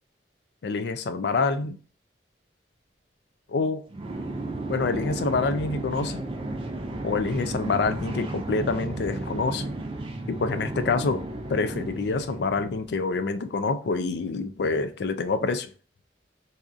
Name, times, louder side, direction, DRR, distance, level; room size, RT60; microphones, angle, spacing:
voice 1, 0.6-1.8 3.5-3.8 4.7-6.3 7.0-9.7 10.3-11.2 11.5-15.7, left 4 dB, 60° left, 0.3 m, -27 dB
sound 1, 3.9-12.9, right 2 dB, 30° right, 0.4 m, -33 dB
4.1 x 2.4 x 2.4 m
head